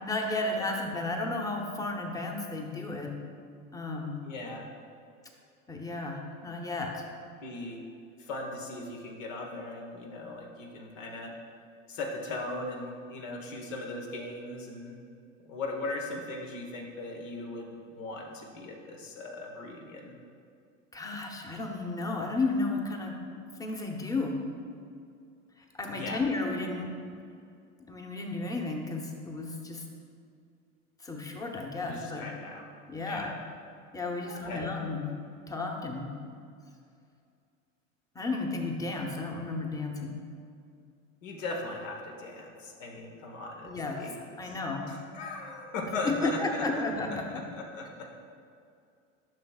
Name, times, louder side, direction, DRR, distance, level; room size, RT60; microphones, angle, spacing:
voice 1, 0.0-3.1 3.7-4.2 5.7-7.0 20.9-23.2 23.6-24.4 25.7-27.2 27.9-29.8 31.0-32.2 32.9-33.3 33.9-35.0 35.5-36.1 38.1-40.2 43.6-44.0 44.4-44.9 46.0-47.4, left 3 dB, 10° left, 1 dB, 0.9 m, -33 dB
voice 2, 4.2-4.7 7.4-7.8 8.2-11.3 11.9-15.0 15.4-20.2 25.9-26.2 31.8-32.7 33.0-33.3 34.3-34.6 41.2-44.2 44.4-46.8 47.3-48.1, left 2 dB, 75° left, 0 dB, 1.3 m, -38 dB
10.5 x 6.0 x 2.4 m, 2.4 s
hypercardioid pair, 90°, 39 cm